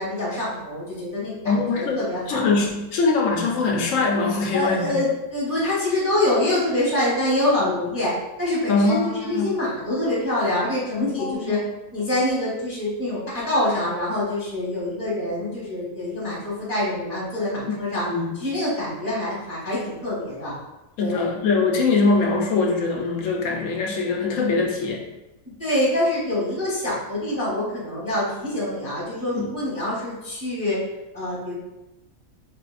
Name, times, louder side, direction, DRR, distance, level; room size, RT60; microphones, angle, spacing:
voice 1, 0.0-2.4 4.5-8.1 8.4-11.6 11.9-18.0 18.4-20.6 21.0-21.3 25.6-30.8 31.1-31.5, left 1 dB, 15° right, -8 dB, 0.7 m, -25 dB
voice 2, 1.4-2.0 2.3-5.0 7.6-7.8 8.7-9.6 11.1-11.6 17.6-17.8 18.0-18.3 21.0-25.0 29.3-29.5, left 3 dB, 70° left, 0 dB, 1.0 m, -22 dB
3.5 x 2.4 x 2.4 m, 1.0 s
omnidirectional pair, 1.5 m